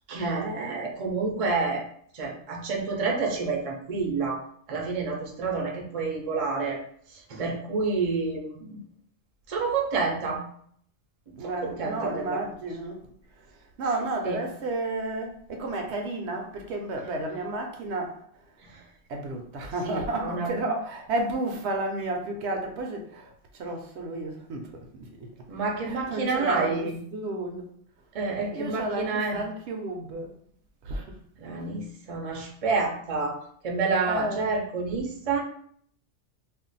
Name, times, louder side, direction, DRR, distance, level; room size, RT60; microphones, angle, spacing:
voice 1, 0.1-1.8 2.1-6.8 7.3-8.8 9.5-10.4 11.4-12.4 14.3-14.4 18.6-18.8 19.8-20.5 25.5-27.0 28.1-29.4 31.4-33.4 33.6-35.4, right 4 dB, 45° right, 0.5 m, -29 dB
voice 2, 11.4-13.0 13.4-18.2 19.1-25.3 25.8-27.7 28.5-30.3 30.8-31.2 34.1-34.4, right 2 dB, 70° right, 0.8 m, -32 dB
2.4 x 2.1 x 3.9 m
omnidirectional pair, 1.3 m